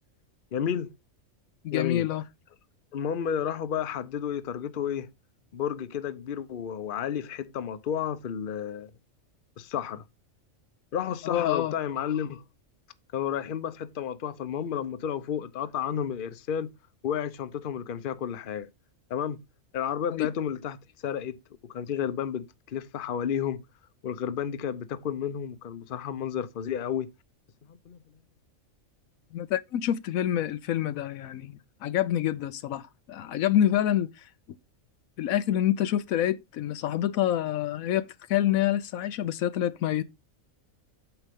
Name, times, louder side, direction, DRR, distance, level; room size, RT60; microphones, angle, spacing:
voice 1, 0.5-0.9 1.7-2.0 2.9-5.1 5.5-8.9 9.6-10.0 10.9-12.4 13.1-16.7 17.0-18.7 19.1-19.4 19.7-20.8 21.0-23.6 24.0-27.1 27.7-28.0, left 8 dB, 45° left, 0.8 m, -31 dB
voice 2, 1.6-2.2 11.2-11.7 20.1-20.3 29.3-34.1 35.2-40.0, left 11 dB, 85° left, 1.1 m, -27 dB
8.9 x 7.0 x 3.5 m
omnidirectional pair, 1.4 m